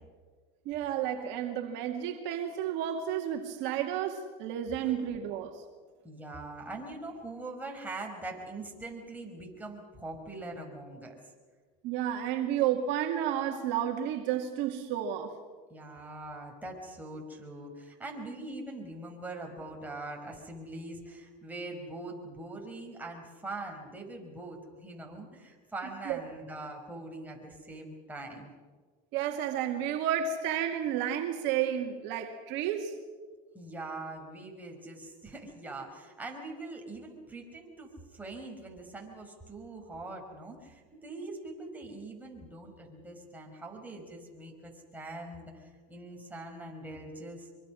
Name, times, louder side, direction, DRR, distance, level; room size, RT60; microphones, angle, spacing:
voice 1, 0.7-5.6 11.8-15.3 26.1-26.2 29.1-32.9, right 10 dB, 65° right, 2.2 m, -31 dB
voice 2, 6.0-11.2 15.7-28.5 33.5-47.5, right 2 dB, 10° right, 5.2 m, -42 dB
24.0 x 24.0 x 6.4 m
supercardioid pair, 110°, 20 cm